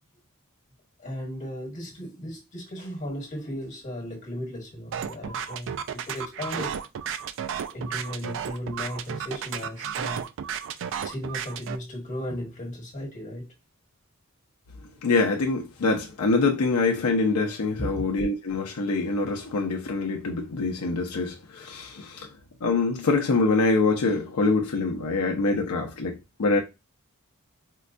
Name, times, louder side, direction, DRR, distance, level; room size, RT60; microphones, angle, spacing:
voice 1, 1.0-6.8 7.7-10.2 11.0-13.5 17.8-18.0, equal, 35° left, 1.3 m, -36 dB
sound 1, 4.9-11.8, right 8 dB, 55° right, 0.3 m, -33 dB
voice 2, 15.0-22.3 22.6-26.6, left 3 dB, 75° left, 0.5 m, -25 dB
4.5 x 2.2 x 2.5 m
head